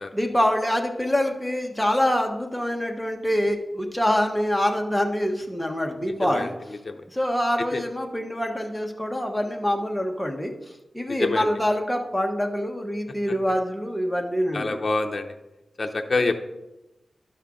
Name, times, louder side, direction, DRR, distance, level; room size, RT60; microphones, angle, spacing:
voice 1, 0.1-6.5 7.1-10.5 10.9-14.8, equal, 5° left, 2 dB, 1.1 m, -25 dB
voice 2, 6.2-6.5 6.8-7.0 7.7-7.8 11.1-11.5 14.5-15.3 15.8-16.3, left 3 dB, 50° left, 5 dB, 0.7 m, -26 dB
11.5 x 5.5 x 3.7 m, 0.99 s
wide cardioid pair, 95°, 0 cm